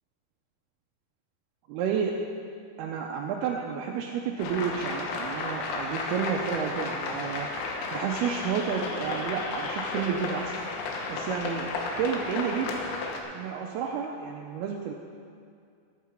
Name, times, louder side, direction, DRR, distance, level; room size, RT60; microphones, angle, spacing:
voice 1, 1.7-2.1 2.8-7.5 7.9-10.6 11.1-12.7 13.3-14.9, right 7 dB, 80° right, 0 dB, 2.5 m, -31 dB
sound 1, 4.4-13.2, left 3 dB, 85° left, 3.3 m, -33 dB
17.0 x 8.4 x 4.4 m, 2.3 s
omnidirectional pair, 4.9 m